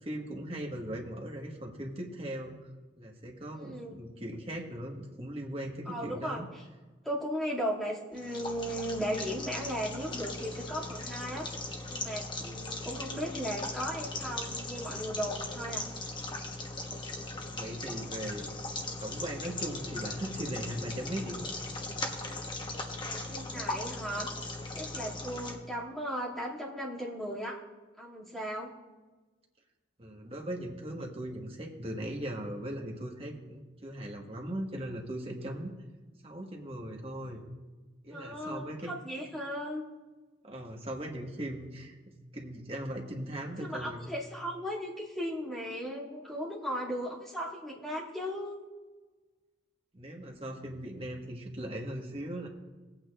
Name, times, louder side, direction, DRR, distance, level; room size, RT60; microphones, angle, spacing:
voice 1, 0.0-2.5 3.0-6.5 17.5-18.4 19.0-21.5 30.0-35.7 36.2-37.4 38.0-38.9 40.4-44.0 49.9-52.5, right 1 dB, 30° right, 0 dB, 1.4 m, -39 dB
voice 2, 3.5-4.0 5.9-6.6 7.0-11.5 11.9-15.9 23.0-24.3 24.7-27.6 28.0-28.7 38.1-39.8 43.6-48.6, equal, ahead, -7 dB, 2.3 m, -36 dB
sound 1, 8.1-25.5, left 2 dB, 25° left, 1.1 m, -38 dB
18.5 x 8.9 x 2.4 m, 1.3 s
head